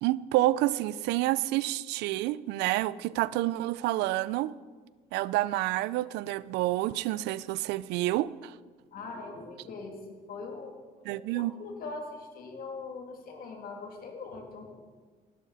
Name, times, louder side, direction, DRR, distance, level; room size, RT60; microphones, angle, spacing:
voice 1, 0.0-4.5 5.1-8.5 11.0-11.5, right 16 dB, 90° right, 0.4 m, -28 dB
voice 2, 8.9-10.7 11.3-14.7, left 3 dB, 60° left, 2.5 m, -41 dB
16.0 x 12.5 x 4.1 m
cardioid pair, 110°, 17 cm